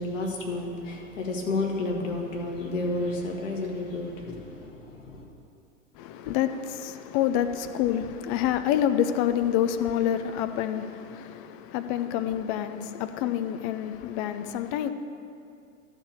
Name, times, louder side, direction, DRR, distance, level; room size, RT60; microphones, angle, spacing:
voice 1, 0.0-5.3, left 2 dB, 65° left, 1.9 m, -31 dB
voice 2, 6.0-14.9, left 10 dB, 40° left, 0.6 m, -27 dB
12.0 x 4.6 x 6.6 m
figure-of-eight pair, 95°, 41 cm